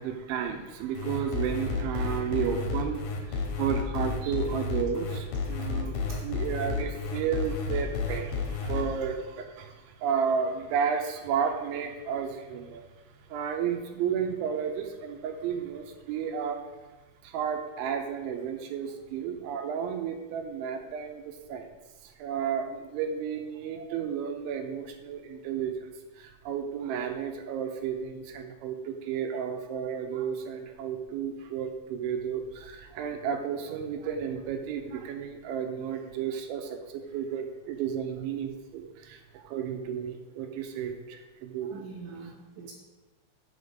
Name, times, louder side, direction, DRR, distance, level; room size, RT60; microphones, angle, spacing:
voice 1, 0.0-12.8 13.3-16.6 17.2-21.7 22.0-25.9 26.2-41.8, right 7 dB, 85° right, 4 dB, 3.1 m, -32 dB
sound 1, 0.9-8.8, left 5 dB, 75° left, 3.2 m, -31 dB
voice 2, 41.7-42.7, right 5 dB, 60° right, -7 dB, 2.3 m, -44 dB
7.1 x 6.9 x 5.2 m, 1.2 s
omnidirectional pair, 5.3 m